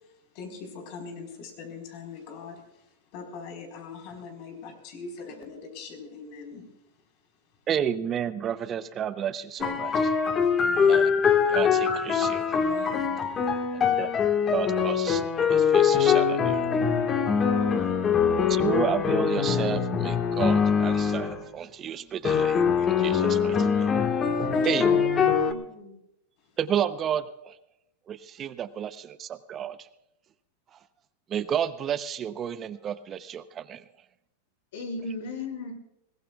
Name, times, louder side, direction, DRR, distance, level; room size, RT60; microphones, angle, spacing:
voice 1, 0.3-2.8 3.1-6.7 10.6-11.1 12.5-13.3 24.2-24.7, left 5 dB, 55° left, 4 dB, 4.3 m, -42 dB
voice 2, 7.7-10.1 10.8-11.1 11.5-12.5 14.0-14.1 14.5-15.2 15.5-16.7 18.5-23.9 24.6-25.0 26.6-27.5 28.1-29.8 31.3-33.8, right 9 dB, 30° right, 13 dB, 0.7 m, -31 dB
sound 1, 9.6-21.4 22.2-25.5, left 6 dB, 25° left, 1.5 m, -23 dB
voice 3, 24.7-25.0 25.3-25.9 34.7-35.7, left 3 dB, 70° left, 2 dB, 5.9 m, -36 dB
21.5 x 18.5 x 2.3 m, 0.82 s
hypercardioid pair, 115°, 0 cm